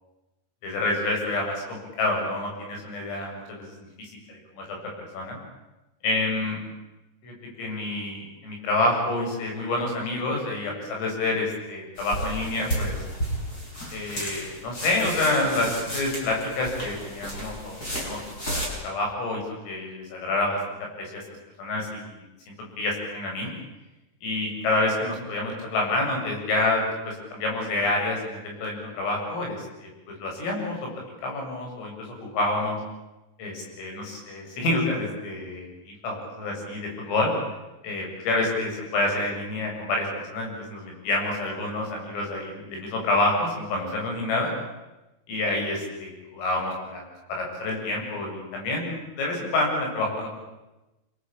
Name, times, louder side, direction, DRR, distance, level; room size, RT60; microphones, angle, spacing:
voice 1, 0.6-3.7 4.0-4.8 5.1-5.4 6.0-6.6 7.2-13.0 13.9-18.2 18.5-20.6 21.0-21.2 21.6-22.1 22.5-23.5 24.2-30.8 31.2-31.9 32.2-32.8 33.4-37.3 37.8-44.5 45.3-50.3, left 2 dB, 80° left, 0 dB, 10.0 m, -28 dB
sound 1, 12.0-18.7, right 1 dB, 15° left, 7.3 m, -33 dB
28.0 x 22.5 x 8.9 m, 1.0 s
omnidirectional pair, 5.9 m